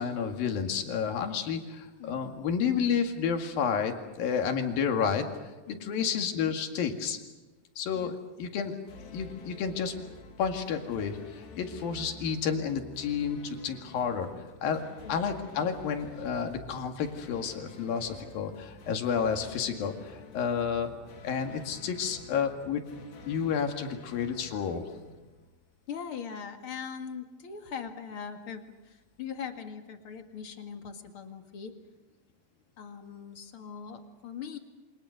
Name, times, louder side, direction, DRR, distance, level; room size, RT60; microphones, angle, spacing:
voice 1, 0.0-7.2 7.8-8.8 9.1-9.9 10.4-14.3 14.6-14.8 15.1-20.9 21.2-22.8 23.3-24.8, left 7 dB, 65° left, 5 dB, 3.7 m, -30 dB
voice 2, 2.0-2.4 5.7-6.0 7.9-8.1 15.0-15.3 20.8-21.0 25.9-31.8 32.8-34.6, left 7 dB, 45° left, 5 dB, 2.1 m, -41 dB
sound 1, 8.9-25.9, left 4 dB, 80° left, 5.4 m, -49 dB
28.0 x 26.0 x 6.5 m, 1.1 s
omnidirectional pair, 4.7 m